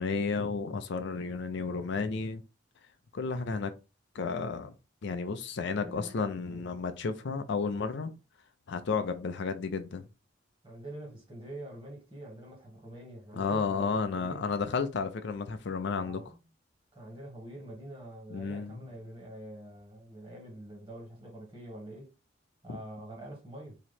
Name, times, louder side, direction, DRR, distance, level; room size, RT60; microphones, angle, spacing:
voice 1, 0.0-2.4 3.1-3.7 4.1-4.7 5.0-8.1 8.7-10.0 13.3-16.2 18.3-18.9 22.7-22.8, left 4 dB, 65° left, 0.5 m, -32 dB
voice 2, 5.6-6.7 10.6-14.5 16.0-16.4 16.9-22.1 22.6-23.8, right 1 dB, 25° right, 1.7 m, -45 dB
3.1 x 2.9 x 4.2 m
head